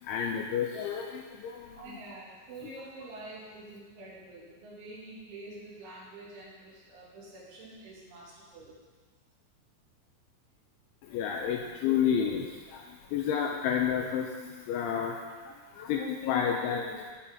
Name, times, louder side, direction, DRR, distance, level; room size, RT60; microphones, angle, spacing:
voice 1, 0.0-2.0 11.0-17.1, left 8 dB, 85° left, 0 dB, 2.9 m, -31 dB
voice 2, 1.8-8.7, right 2 dB, 70° right, -7 dB, 5.0 m, -47 dB
17.0 x 6.0 x 3.9 m, 1.4 s
omnidirectional pair, 5.7 m